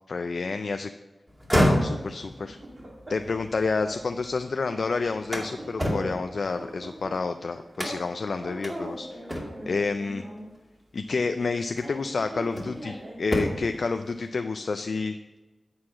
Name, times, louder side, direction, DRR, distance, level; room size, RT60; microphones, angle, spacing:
voice 1, 0.1-0.9 1.5-2.6 3.1-9.2 9.7-10.2 10.9-15.2, left 4 dB, 70° left, 8 dB, 0.3 m, -29 dB
sound 1, 1.3-4.4 4.8-7.2 7.7-8.2 8.6-8.8 9.3-9.8 11.0-11.2 11.8-12.9 13.2-13.8, equal, 10° right, 2.2 m, -29 dB
sound 2, 2.1-3.5 3.8-4.1 4.3-6.2 6.5-8.1 8.3-10.5 11.3-13.3, right 1 dB, 50° right, 2.0 m, -41 dB
8.6 x 4.7 x 7.2 m, 1.1 s
cardioid pair, 50°, 0 cm